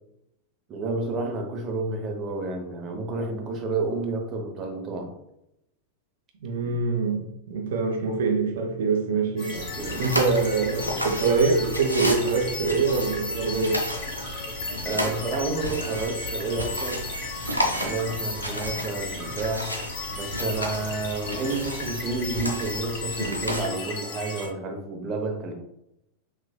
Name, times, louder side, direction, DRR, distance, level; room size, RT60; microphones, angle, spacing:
voice 1, 0.7-5.1 6.6-6.7 9.5-10.0 14.8-17.0 17.8-19.7 20.1-25.5, right 3 dB, 30° right, 0.8 m, -30 dB
voice 2, 6.4-9.5 9.9-13.8, right 4 dB, 60° right, 0.7 m, -24 dB
sound 1, 9.4-24.5, left 3 dB, 45° left, 1.2 m, -35 dB
sound 2, 9.5-23.7, equal, 85° left, 0.5 m, -33 dB
5.7 x 2.5 x 2.2 m
figure-of-eight pair, 90°, 0 cm